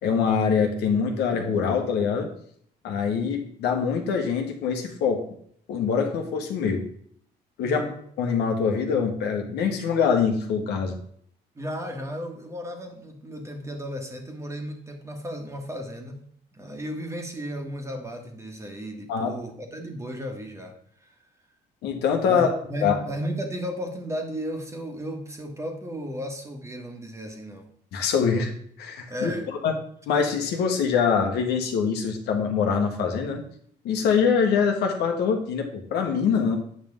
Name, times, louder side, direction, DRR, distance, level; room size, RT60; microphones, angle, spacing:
voice 1, 0.0-2.3 2.8-5.2 5.7-6.8 7.6-7.8 8.2-11.0 19.1-19.3 21.8-22.5 22.8-23.0 27.9-28.5 28.8-29.7 30.1-33.4 33.8-36.6, left 6 dB, 80° left, 4 dB, 1.4 m, -24 dB
voice 2, 7.6-8.0 11.5-16.2 16.5-20.7 21.0-21.1 22.3-27.7 29.1-29.5, equal, 15° right, 3 dB, 1.5 m, -34 dB
8.8 x 5.4 x 3.6 m, 0.62 s
cardioid pair, 110°, 17 cm